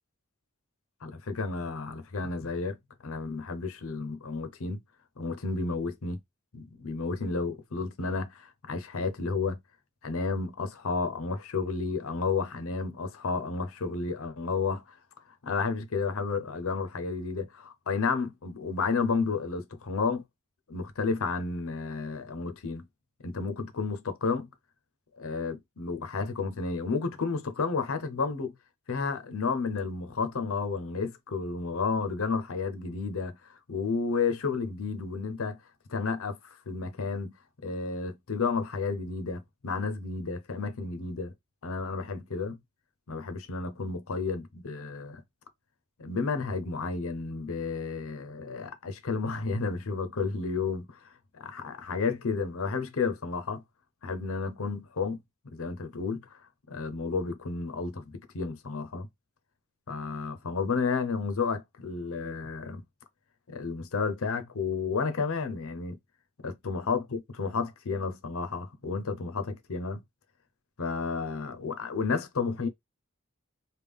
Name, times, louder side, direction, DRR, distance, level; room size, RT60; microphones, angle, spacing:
voice 1, 1.0-2.8 3.0-4.8 5.2-6.2 6.5-9.6 10.0-15.0 15.4-20.2 20.7-22.8 23.2-24.5 25.2-28.5 28.9-35.6 35.9-37.4 37.6-41.3 41.6-42.6 43.1-45.2 46.0-51.0 51.4-53.6 54.0-55.2 55.5-56.4 56.7-59.1 59.9-62.8 63.5-66.0 66.4-70.0 70.8-72.7, left 4 dB, 70° left, 0.7 m, -31 dB
3.4 x 2.3 x 3.4 m
head